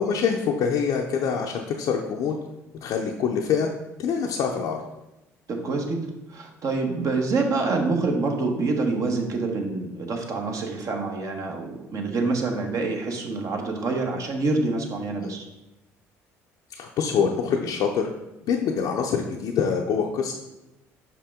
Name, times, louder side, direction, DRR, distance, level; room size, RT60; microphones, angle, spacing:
voice 1, 0.0-2.3 2.8-3.7 4.0-4.8 15.2-15.3 16.7-18.1 18.5-20.3, left 6 dB, 60° left, 0 dB, 0.6 m, -25 dB
voice 2, 5.5-6.0 6.3-15.5, right 3 dB, 50° right, 3 dB, 1.1 m, -26 dB
5.7 x 4.7 x 3.6 m, 0.95 s
hypercardioid pair, 65°, 7 cm